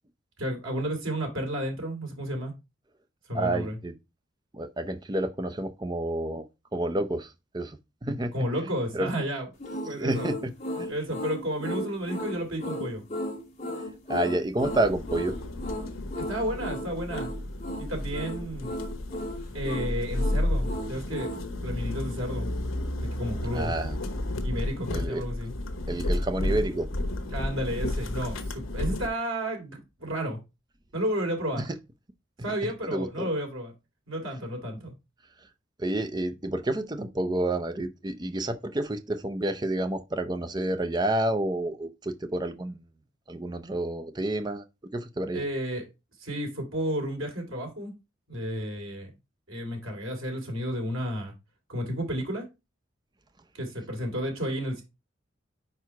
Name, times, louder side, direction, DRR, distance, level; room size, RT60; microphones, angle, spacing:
voice 1, 0.4-2.5 3.3-3.8 8.3-9.5 9.8-10.3 10.9-13.0 16.1-17.3 17.8-18.8 19.5-21.3 21.6-22.5 23.0-23.7 24.4-25.5 27.3-30.4 30.9-31.7 32.4-33.7 34.1-34.9 45.3-45.8 46.2-47.9 48.3-49.1 49.5-51.3 51.7-52.4 53.5-54.8, equal, 90° right, 2.6 m, -32 dB
voice 2, 3.3-3.9 4.5-6.5 6.7-8.3 8.9-9.1 9.9-10.5 10.8-10.9 14.1-15.4 21.6-21.9 23.5-24.0 24.9-25.2 25.9-26.9 31.6-31.7 32.9-33.3 35.8-42.8 43.3-44.6 44.9-45.4, right 1 dB, 20° right, 0.5 m, -29 dB
sound 1, 9.6-21.5, equal, 35° left, 1.6 m, -35 dB
sound 2, 14.6-29.1, left 1 dB, 85° left, 1.0 m, -32 dB
4.9 x 4.6 x 4.5 m
head